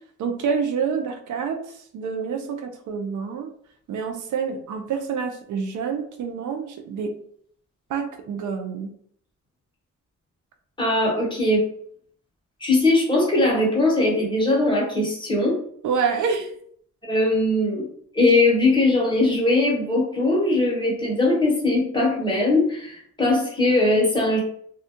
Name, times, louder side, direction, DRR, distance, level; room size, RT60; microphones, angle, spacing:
voice 1, 0.2-1.6 1.9-3.5 3.9-7.1 7.9-8.9 15.8-16.5, right 6 dB, 80° right, 4 dB, 0.5 m, -27 dB
voice 2, 10.8-11.6 12.6-15.6 17.0-17.9 18.1-24.4, left 2 dB, 15° left, -3 dB, 1.0 m, -20 dB
2.3 x 2.1 x 2.7 m, 0.62 s
cardioid pair, 100°, 30 cm